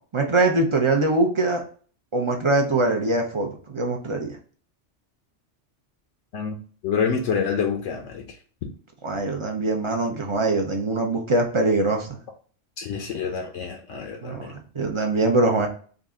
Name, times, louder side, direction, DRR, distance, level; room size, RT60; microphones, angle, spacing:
voice 1, 0.1-1.6 2.1-4.4 9.0-12.1 14.2-15.7, right 2 dB, 40° right, 0.5 m, -23 dB
voice 2, 6.8-8.3 12.8-14.5, left 6 dB, 80° left, 1.0 m, -27 dB
3.9 x 2.2 x 3.6 m
omnidirectional pair, 1.3 m